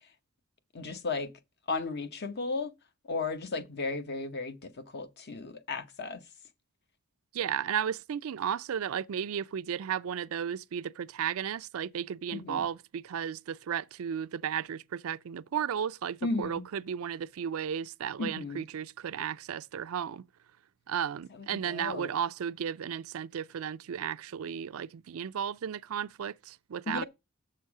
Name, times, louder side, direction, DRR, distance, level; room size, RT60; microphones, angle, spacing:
voice 1, 0.7-1.3 1.7-2.7 3.0-6.2 12.3-12.6 16.2-16.6 18.2-18.6 21.3-22.1 26.9-27.0, left 3 dB, 50° left, 0.8 m, -35 dB
voice 2, 7.3-20.2 20.9-27.0, right 8 dB, 75° right, 0.4 m, -34 dB
7.1 x 6.7 x 4.7 m
head